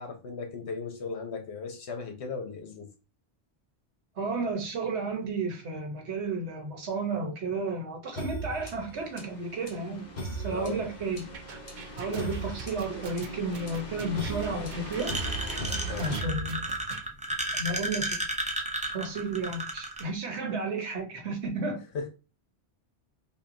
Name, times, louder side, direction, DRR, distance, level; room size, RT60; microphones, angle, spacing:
voice 1, 0.0-2.9 10.5-10.8 12.0-12.2 15.9-16.1 21.9-22.1, left 4 dB, 70° left, 1.1 m, -37 dB
voice 2, 4.2-11.3 12.0-15.1 16.0-16.7 17.6-18.2 18.9-21.8, right 3 dB, 75° right, 1.2 m, -32 dB
sound 1, 8.2-17.0, right 1 dB, 40° left, 1.1 m, -38 dB
sound 2, 11.3-17.0, right 5 dB, 50° right, 0.6 m, -44 dB
sound 3, 15.0-20.0, right 1 dB, 10° right, 0.3 m, -32 dB
5.5 x 2.4 x 2.6 m
omnidirectional pair, 1.2 m